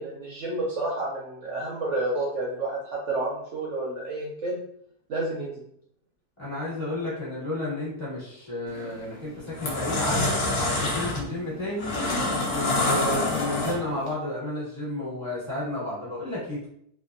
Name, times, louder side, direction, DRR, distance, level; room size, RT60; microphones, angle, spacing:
voice 1, 0.0-4.6 5.1-5.6, right 2 dB, 65° right, -4 dB, 0.8 m, -30 dB
voice 2, 6.4-10.4 10.8-11.9 12.5-16.7, left 1 dB, 20° left, -9 dB, 1.4 m, -32 dB
sound 1, 8.7-8.9 9.4-14.1, left 2 dB, 60° left, 0.8 m, -26 dB
2.8 x 2.2 x 2.4 m, 0.68 s
omnidirectional pair, 1.7 m